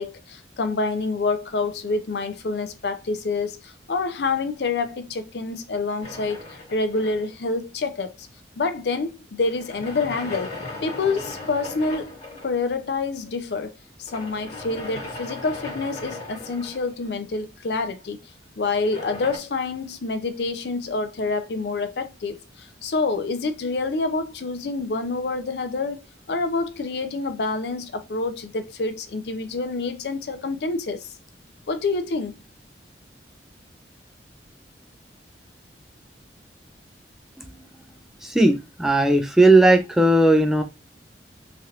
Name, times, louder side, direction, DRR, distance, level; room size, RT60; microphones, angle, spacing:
voice 1, 0.0-6.4 6.7-8.3 8.6-10.5 10.8-12.2 12.4-13.7 14.0-18.2 18.6-26.0 26.3-31.1 31.7-32.4, left 3 dB, 65° left, 0.5 m, -27 dB
sound 1, 6.0-7.5 9.4-12.6 14.1-17.3 18.8-19.4, left 2 dB, 40° left, 1.4 m, -37 dB
voice 2, 38.2-40.6, right 2 dB, 5° right, 0.4 m, -17 dB
3.2 x 2.4 x 2.7 m
head